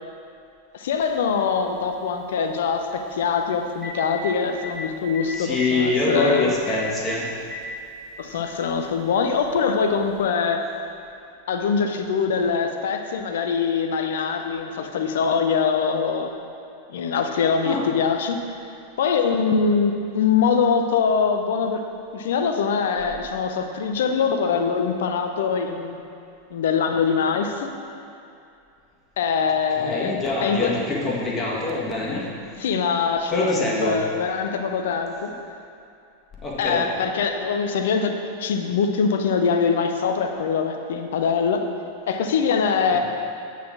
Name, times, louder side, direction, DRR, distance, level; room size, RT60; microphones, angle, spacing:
voice 1, 0.7-6.5 8.2-10.7 11.5-16.3 16.9-18.4 19.0-21.9 22.1-26.0 26.5-27.7 29.2-30.1 30.4-30.8 32.6-35.3 36.6-38.1 38.4-41.7 42.1-43.0, left 6 dB, 60° left, 6 dB, 0.6 m, -23 dB
Telephone, 1.0-1.1 3.3-3.4 3.7-4.2 4.6-4.7 5.1-5.3 5.5-5.7 6.2-6.3 6.7-6.8 7.1-7.6 8.6-8.7 10.2-10.3, left 4 dB, 5° right, 1.8 m, -35 dB
voice 2, 5.3-7.4 17.6-17.8 29.8-32.4 33.3-34.0 36.4-36.8 42.9-43.0, left 2 dB, 20° left, -3 dB, 1.5 m, -25 dB
8.4 x 4.1 x 6.0 m, 2.5 s
figure-of-eight pair, 90°, 0 cm